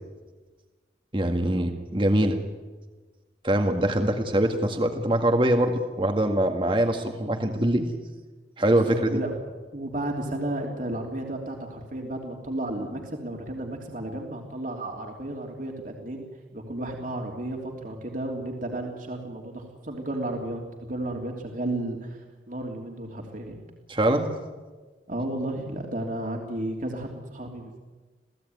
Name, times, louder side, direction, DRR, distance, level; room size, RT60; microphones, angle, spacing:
voice 1, 1.1-2.4 3.4-7.9 8.6-9.1 23.9-24.3, right 1 dB, 30° right, 5 dB, 1.8 m, -23 dB
voice 2, 8.7-9.4 9.7-16.2 16.5-23.6 25.1-27.8, right 1 dB, 50° right, 1 dB, 3.2 m, -33 dB
28.0 x 17.0 x 9.4 m, 1.3 s
head